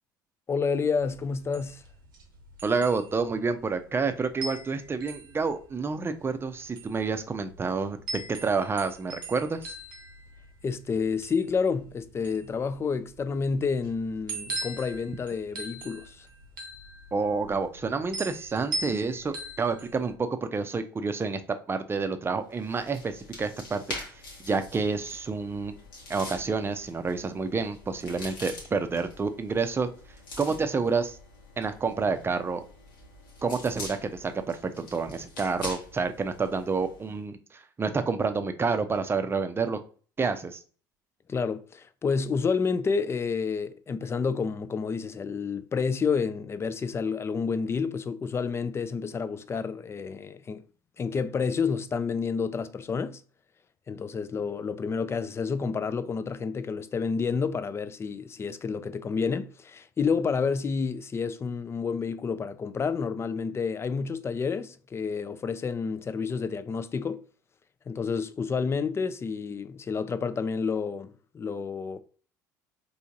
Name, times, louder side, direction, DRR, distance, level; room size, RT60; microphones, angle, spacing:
voice 1, 0.5-1.8 10.6-16.3 41.3-50.6 51.0-53.2 53.9-67.2 67.9-72.0, left 5 dB, 25° left, 0.4 m, -29 dB
sound 1, 1.0-20.1, right 2 dB, 80° right, 0.8 m, -40 dB
voice 2, 2.6-9.7 17.1-21.4 21.7-23.8 24.4-25.7 26.1-29.9 30.4-31.2 31.6-32.6 33.4-39.8 40.2-40.6, right 4 dB, 20° right, 0.6 m, -29 dB
sound 2, 22.5-37.1, left 2 dB, 75° left, 1.1 m, -45 dB
4.5 x 2.7 x 2.6 m
figure-of-eight pair, 65°, 11 cm